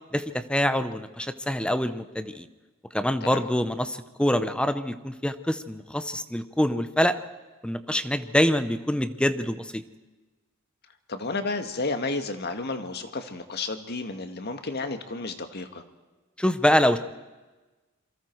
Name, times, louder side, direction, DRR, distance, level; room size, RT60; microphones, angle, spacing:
voice 1, 0.1-2.5 2.9-7.2 7.6-9.8 16.4-17.0, equal, 5° left, 11 dB, 0.8 m, -25 dB
voice 2, 11.1-15.8, left 3 dB, 50° left, 7 dB, 1.8 m, -32 dB
27.5 x 23.5 x 4.6 m, 1.2 s
head